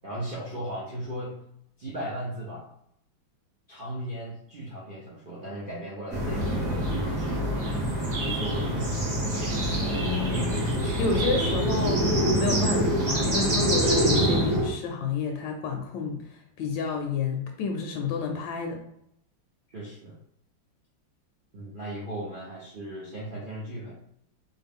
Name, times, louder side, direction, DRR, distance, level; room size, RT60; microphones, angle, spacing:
voice 1, 0.0-1.4 1.8-2.7 3.7-7.7 8.2-9.3 19.7-20.2 21.5-23.9, right 1 dB, 85° right, -7 dB, 0.4 m, -37 dB
sound 1, 6.1-14.7, right 1 dB, 50° right, 1.4 m, -25 dB
voice 2, 10.0-18.8, left 5 dB, 75° left, 3 dB, 1.2 m, -30 dB
4.2 x 2.2 x 3.5 m, 0.72 s
omnidirectional pair, 2.1 m